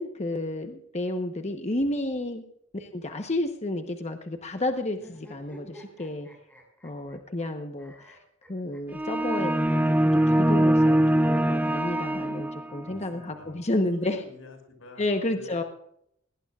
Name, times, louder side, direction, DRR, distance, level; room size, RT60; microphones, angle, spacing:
voice 1, 0.0-2.4 2.7-6.3 6.8-8.2 8.5-14.2 15.0-15.6, left 1 dB, 35° left, 6 dB, 1.1 m, -31 dB
sound 1, 4.9-7.5 7.8-9.1 9.4-9.5 9.8-9.9 10.3-10.4 11.4-12.4, equal, 10° left, 6.0 m, -52 dB
sound 2, 8.9-12.9, right 1 dB, 10° right, 0.4 m, -23 dB
voice 2, 12.8-15.7, left 3 dB, 90° left, 3 dB, 5.6 m, -49 dB
20.5 x 18.5 x 2.5 m, 0.72 s
head